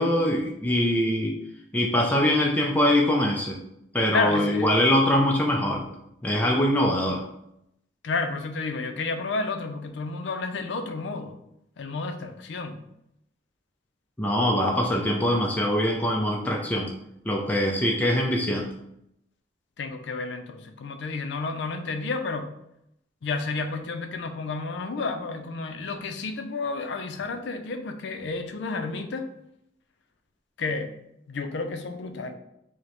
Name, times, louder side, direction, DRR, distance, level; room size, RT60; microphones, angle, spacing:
voice 1, 0.0-1.3 1.7-3.6 3.9-5.8 6.2-7.2 14.2-16.9 17.3-18.7, left 1 dB, 10° left, -1 dB, 0.3 m, -23 dB
voice 2, 4.1-4.7 8.0-11.4 11.8-12.8 19.8-22.5 23.2-29.3 30.6-30.9 31.3-32.3, left 3 dB, 70° left, 7 dB, 0.4 m, -31 dB
4.9 x 2.1 x 2.9 m, 0.79 s
head